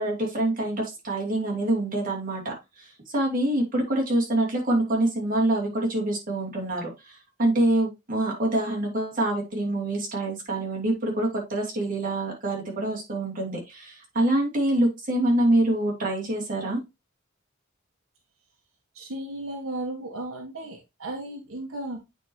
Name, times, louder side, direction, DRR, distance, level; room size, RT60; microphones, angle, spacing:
voice 1, 0.0-16.8, right 1 dB, 45° right, -2 dB, 2.9 m, -26 dB
voice 2, 18.9-22.0, right 1 dB, 85° right, 3 dB, 1.2 m, -35 dB
8.7 x 4.8 x 3.0 m, 0.23 s
head